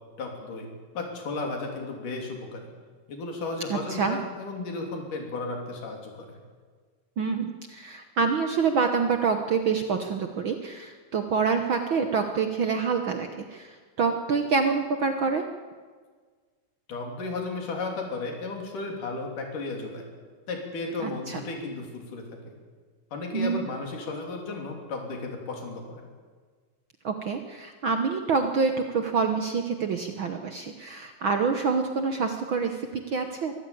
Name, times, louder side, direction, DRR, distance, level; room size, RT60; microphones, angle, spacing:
voice 1, 0.2-0.7 0.9-2.7 3.1-6.4 16.9-20.0 20.5-22.5 23.1-26.1, left 3 dB, 90° left, 2 dB, 4.8 m, -34 dB
voice 2, 3.7-4.2 7.2-15.4 21.0-21.4 23.3-23.7 27.0-33.5, right 5 dB, 60° right, 6 dB, 1.3 m, -27 dB
23.5 x 15.0 x 8.6 m, 1.5 s
omnidirectional pair, 3.6 m